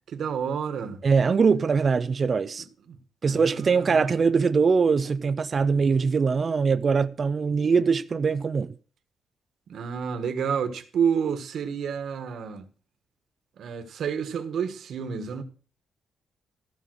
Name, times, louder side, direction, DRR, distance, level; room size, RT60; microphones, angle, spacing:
voice 1, 0.1-1.0 2.9-3.0 3.2-4.1 9.7-12.6 13.6-15.4, right 7 dB, 60° right, 1.4 m, -29 dB
voice 2, 1.0-2.6 3.2-8.7, right 5 dB, 35° right, 0.5 m, -22 dB
14.5 x 5.5 x 6.2 m
cardioid pair, 140°, 0 cm